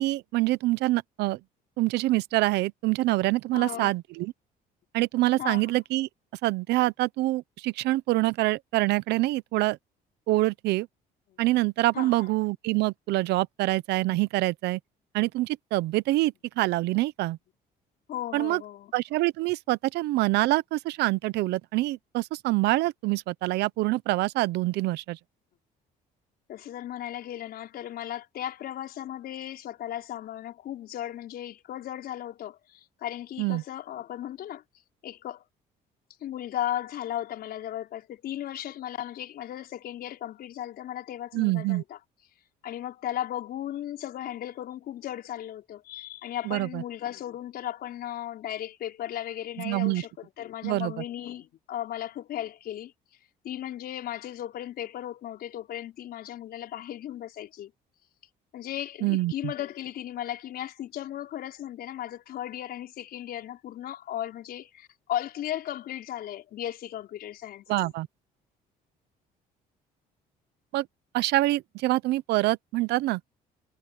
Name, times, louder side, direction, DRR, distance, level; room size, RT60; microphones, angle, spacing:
voice 1, 0.0-1.4 1.8-4.3 4.9-6.1 6.4-9.8 10.3-10.9 11.4-14.8 15.1-17.4 18.3-18.6 18.9-25.2 33.4-33.6 41.3-41.8 46.4-46.8 49.6-50.0 50.6-51.0 59.0-59.5 67.7-68.1 70.7-70.9 71.1-73.2, right 18 dB, 80° right, 0.7 m, -26 dB
voice 2, 3.5-3.9 5.4-5.8 11.3-11.4 11.9-12.2 18.1-18.9 26.5-34.6 35.0-35.4 36.2-42.0 42.6-50.1 50.4-52.9 53.4-57.7 58.5-67.9, left 12 dB, 65° left, 5.5 m, -36 dB
cardioid pair, 110°, 17 cm